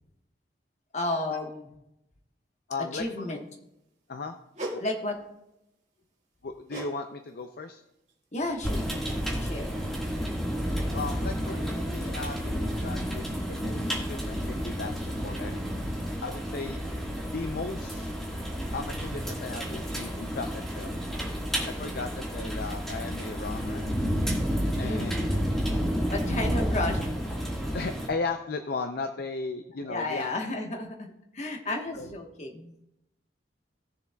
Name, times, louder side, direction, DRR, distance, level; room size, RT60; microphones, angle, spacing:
voice 1, 0.9-1.7 2.9-3.4 4.8-5.2 8.3-9.0 9.4-9.7 24.8-25.6 26.1-27.1 29.8-32.7, left 2 dB, 40° left, 2 dB, 1.2 m, -32 dB
voice 2, 2.7-3.4 4.1-4.4 4.7-4.8 6.4-7.8 10.9-15.7 16.2-16.9 17.3-18.1 18.7-21.0 21.7-23.9 24.8-25.2 27.7-30.3 31.9-32.1, left 3 dB, 55° left, 7 dB, 0.5 m, -36 dB
sound 1, 4.5-4.9 6.7-7.0 7.2-7.5 8.1-8.2, right 1 dB, 40° right, 1.7 m, -37 dB
sound 2, 8.6-28.1, equal, ahead, 1.7 m, -31 dB
18.5 x 7.0 x 2.3 m, 0.89 s
head